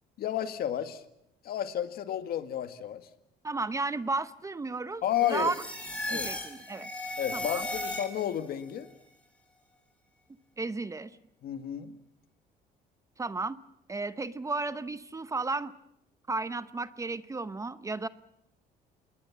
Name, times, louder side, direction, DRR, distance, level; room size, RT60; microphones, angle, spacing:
voice 1, 0.2-1.0 1.4-3.1 5.0-5.5 6.1-6.3 7.2-8.9 11.4-12.0, left 11 dB, 65° left, 9 dB, 1.9 m, -32 dB
voice 2, 3.4-5.6 6.1-6.9 7.3-7.7 10.6-11.1 13.2-13.6 13.9-15.7 16.3-18.1, right 3 dB, 20° right, 14 dB, 0.8 m, -33 dB
sound 1, 5.1-8.5, left 1 dB, 10° left, 5.4 m, -36 dB
27.0 x 20.5 x 7.4 m, 0.83 s
cardioid pair, 110°, 17 cm